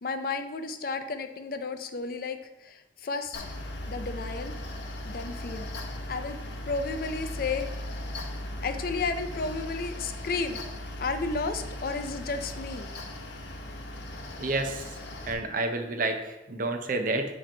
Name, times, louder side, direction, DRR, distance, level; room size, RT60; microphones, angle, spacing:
voice 1, 0.0-3.4 3.9-4.6 5.0-5.7 6.1-6.4 6.7-7.7 8.6-10.6 11.0-12.9, left 4 dB, 55° left, 8 dB, 0.5 m, -32 dB
Mechanical fan, 3.3-15.3, left 1 dB, 80° left, 0.8 m, -38 dB
voice 2, 14.4-15.0 15.3-17.3, right 2 dB, 50° right, 6 dB, 0.6 m, -29 dB
7.4 x 3.0 x 4.4 m, 1.0 s
head